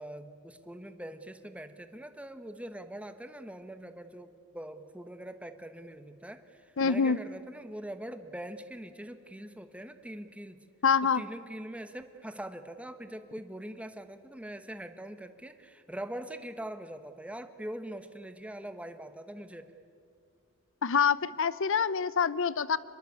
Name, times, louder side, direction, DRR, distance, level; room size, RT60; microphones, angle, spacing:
voice 1, 0.0-10.6 11.1-19.7, right 1 dB, 5° right, 9 dB, 1.2 m, -43 dB
voice 2, 6.8-7.2 10.8-11.2 20.8-22.8, left 6 dB, 65° left, 18 dB, 0.7 m, -26 dB
25.0 x 21.5 x 8.4 m, 2.4 s
head